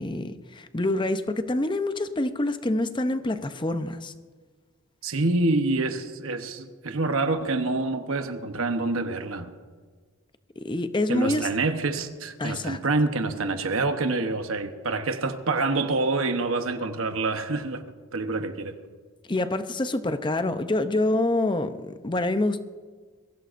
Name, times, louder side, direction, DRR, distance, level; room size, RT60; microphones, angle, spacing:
voice 1, 0.0-4.1 10.6-11.5 12.4-12.8 19.3-22.6, left 2 dB, 20° left, 10 dB, 0.6 m, -26 dB
voice 2, 5.0-9.5 11.1-17.8 18.1-18.7, right 3 dB, 65° right, 7 dB, 1.0 m, -26 dB
22.0 x 16.5 x 2.6 m, 1.5 s
head